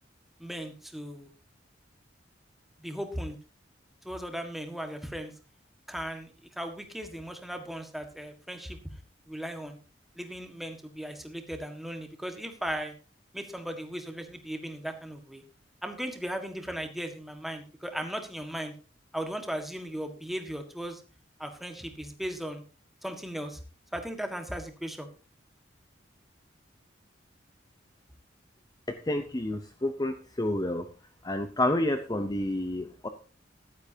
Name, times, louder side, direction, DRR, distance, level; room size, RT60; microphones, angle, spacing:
voice 1, 0.4-1.3 2.8-3.4 4.0-5.3 5.9-8.8 9.3-9.8 10.1-12.9 13.3-15.4 15.8-18.7 19.1-21.0 21.4-22.6 23.0-23.6 23.9-25.1, equal, ahead, 5 dB, 1.6 m, -37 dB
voice 2, 28.9-30.9 31.2-33.1, left 1 dB, 20° left, 7 dB, 0.7 m, -29 dB
15.0 x 12.0 x 2.8 m, 0.34 s
head